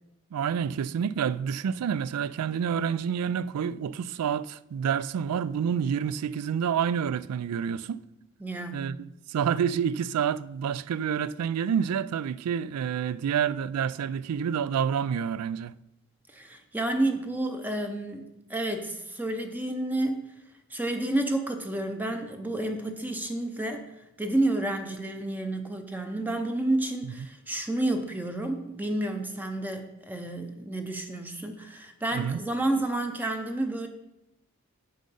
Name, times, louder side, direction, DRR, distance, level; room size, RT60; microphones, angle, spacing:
voice 1, 0.3-8.0 8.7-15.7 32.1-32.4, right 7 dB, 90° right, 0.3 m, -28 dB
voice 2, 8.4-8.9 16.3-20.2 20.7-23.8 24.2-33.9, right 1 dB, 10° right, 0.5 m, -30 dB
7.8 x 6.3 x 5.4 m
head